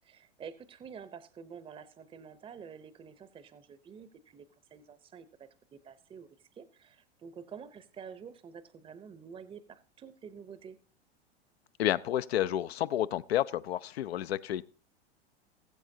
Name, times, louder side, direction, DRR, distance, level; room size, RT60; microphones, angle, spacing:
voice 1, 0.0-10.8, right 6 dB, 15° right, 0.7 m, -49 dB
voice 2, 11.8-14.6, left 12 dB, 75° left, 0.6 m, -30 dB
20.0 x 7.7 x 2.7 m
hypercardioid pair, 100°, 32 cm